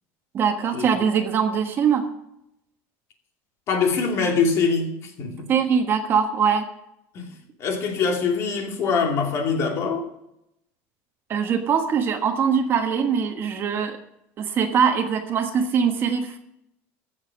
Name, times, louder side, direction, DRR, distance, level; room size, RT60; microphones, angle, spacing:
voice 1, 0.3-2.0 5.5-6.7 11.3-14.0 14.4-16.4, right 7 dB, 35° right, 6 dB, 1.3 m, -22 dB
voice 2, 3.7-5.5 7.1-10.1, left 5 dB, 40° left, 2 dB, 2.6 m, -24 dB
14.5 x 7.3 x 6.2 m, 0.79 s
cardioid pair, 155°, 7 cm